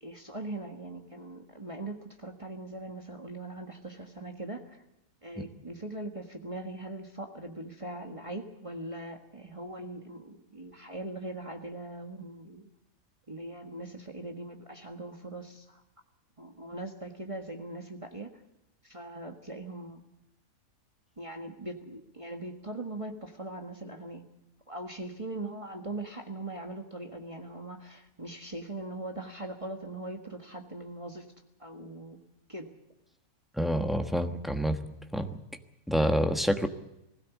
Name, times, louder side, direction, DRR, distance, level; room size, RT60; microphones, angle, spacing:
voice 1, 0.0-4.8 5.2-12.7 13.3-15.8 16.4-18.4 18.8-20.0 21.2-24.2 24.7-31.2 31.6-32.2 32.5-32.7, right 2 dB, 20° right, 3 dB, 1.6 m, -41 dB
voice 2, 33.6-34.8 35.1-35.3 35.9-36.7, equal, ahead, 6 dB, 1.1 m, -27 dB
20.5 x 16.5 x 8.3 m, 0.91 s
omnidirectional pair, 1.6 m